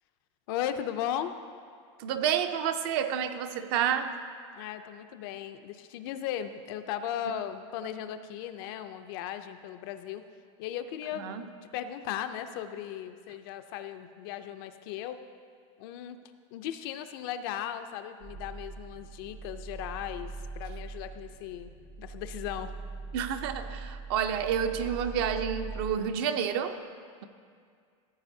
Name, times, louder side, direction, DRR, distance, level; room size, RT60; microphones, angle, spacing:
voice 1, 0.5-1.3 4.5-10.2 10.6-15.2 15.8-16.2 16.5-21.7 22.0-22.7, left 10 dB, 50° left, 9 dB, 0.4 m, -37 dB
voice 2, 2.0-4.1 11.2-11.4 23.1-26.8, right 8 dB, 50° right, 8 dB, 0.6 m, -29 dB
sound 1, 18.2-25.9, right 3 dB, 80° right, 1.3 m, -41 dB
15.5 x 8.6 x 2.7 m, 2.2 s
supercardioid pair, 170°, 16 cm